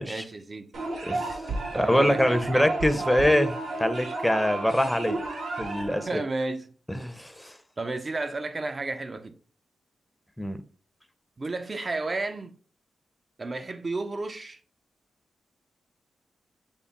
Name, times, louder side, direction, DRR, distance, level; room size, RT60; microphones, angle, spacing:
voice 1, 0.0-0.9 1.7-2.7 6.1-6.7 7.8-9.4 11.4-12.6 13.4-14.6, right 3 dB, 40° right, 0.5 m, -32 dB
sound 1, 0.7-6.1, right 2 dB, 75° right, 1.1 m, -32 dB
voice 2, 1.0-1.4 1.7-3.5 3.8-5.2 5.6-6.2 6.9-7.5 10.4-10.6, equal, 5° left, 0.5 m, -24 dB
5.3 x 2.0 x 3.5 m
cardioid pair, 60°, 0 cm